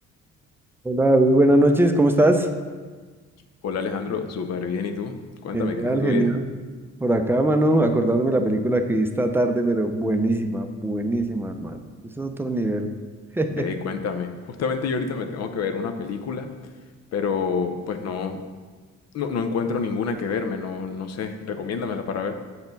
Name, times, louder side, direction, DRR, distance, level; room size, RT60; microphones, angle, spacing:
voice 1, 0.8-2.5 5.5-6.5 7.0-12.9 13.3-13.7, right 1 dB, 10° right, 6 dB, 0.5 m, -21 dB
voice 2, 3.6-6.3 13.5-16.5 17.1-18.4 19.1-22.3, left 5 dB, 60° left, 7 dB, 0.6 m, -28 dB
7.0 x 4.3 x 3.9 m, 1.4 s
cardioid pair, 90°, 30 cm